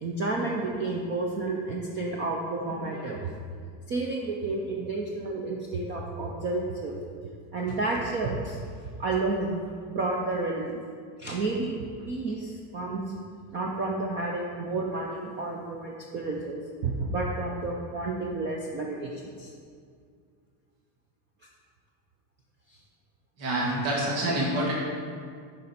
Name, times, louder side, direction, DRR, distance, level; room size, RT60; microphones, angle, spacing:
voice 1, 0.0-3.2 3.9-7.0 7.5-8.6 9.0-9.6 9.9-10.7 11.2-11.7 12.1-13.0 13.5-19.5, right 3 dB, 25° right, -1 dB, 0.4 m, -30 dB
voice 2, 23.4-24.7, right 1 dB, 80° right, -3 dB, 1.9 m, -27 dB
8.8 x 5.3 x 4.2 m, 2.1 s
cardioid pair, 175°, 45 cm